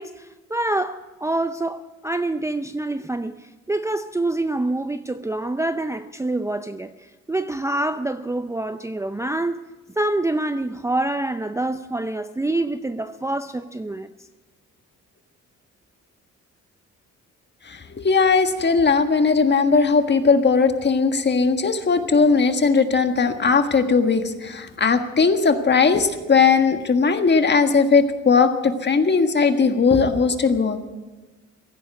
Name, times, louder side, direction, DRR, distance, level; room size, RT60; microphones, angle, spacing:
voice 1, 0.0-6.9 7.3-9.6 10.0-14.1, right 2 dB, 10° right, 0.5 m, -26 dB
voice 2, 17.7-30.8, left 5 dB, 35° left, 1.6 m, -18 dB
16.0 x 11.0 x 8.0 m
cardioid pair, 90°, 30 cm